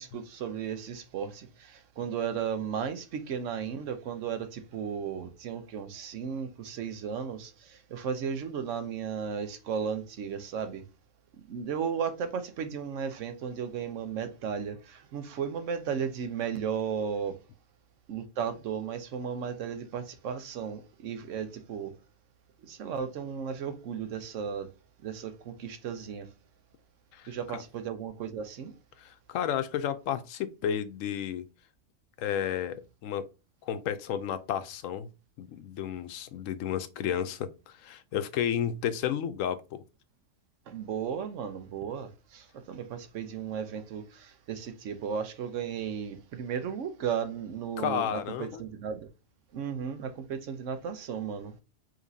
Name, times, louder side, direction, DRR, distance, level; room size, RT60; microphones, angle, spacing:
voice 1, 0.0-10.8 11.5-17.4 18.1-21.9 22.6-24.7 25.0-26.3 27.3-28.7 40.7-49.1 49.5-51.6, right 7 dB, 75° right, 1.1 m, -35 dB
voice 2, 27.1-27.6 29.0-31.4 32.2-33.3 33.6-35.1 35.4-39.8 47.8-48.6, left 9 dB, 90° left, 1.0 m, -32 dB
5.1 x 3.1 x 2.6 m
omnidirectional pair, 1.3 m